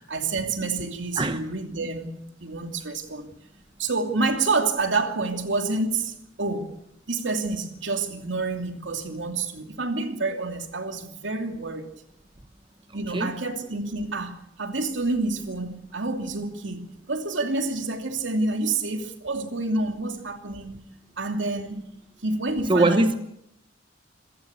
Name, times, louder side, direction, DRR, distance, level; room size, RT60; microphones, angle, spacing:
voice 1, 0.1-3.3 3.8-6.8 7.1-11.9 12.9-20.9 21.2-21.9 22.2-23.2, right 3 dB, 75° right, 2.7 m, -28 dB
voice 2, 22.7-23.1, right 2 dB, 25° right, 1.0 m, -21 dB
27.5 x 15.5 x 8.1 m
head